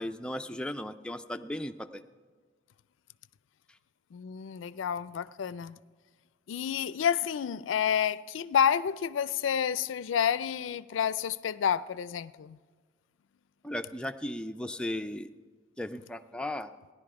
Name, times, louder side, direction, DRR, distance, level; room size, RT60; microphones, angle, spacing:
voice 1, 0.0-2.0 13.6-15.3 15.8-16.7, left 1 dB, 5° left, 0.3 m, -36 dB
voice 2, 4.1-5.8 6.5-12.6, left 8 dB, 80° left, 0.4 m, -29 dB
16.5 x 11.0 x 4.7 m
head